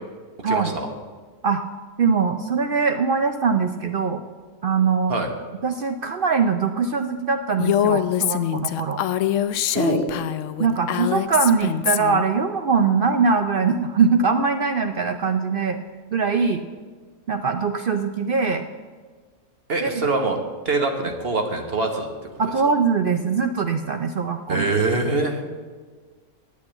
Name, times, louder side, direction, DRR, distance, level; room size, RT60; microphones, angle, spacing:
voice 1, 0.5-0.9 5.1-5.3 9.7-10.1 19.7-20.4 20.6-22.1 22.4-22.5 24.5-25.4, right 3 dB, 45° right, 4 dB, 1.2 m, -23 dB
voice 2, 2.0-4.2 4.6-5.2 5.6-9.0 10.6-15.8 16.1-16.6 17.3-18.6 19.8-20.0 22.4-24.7, right 5 dB, 80° right, 7 dB, 0.4 m, -22 dB
Female speech woman speaking, 7.6-12.3, left 11 dB, 70° left, 0.8 m, -24 dB
8.6 x 8.3 x 8.7 m, 1.5 s
omnidirectional pair, 1.6 m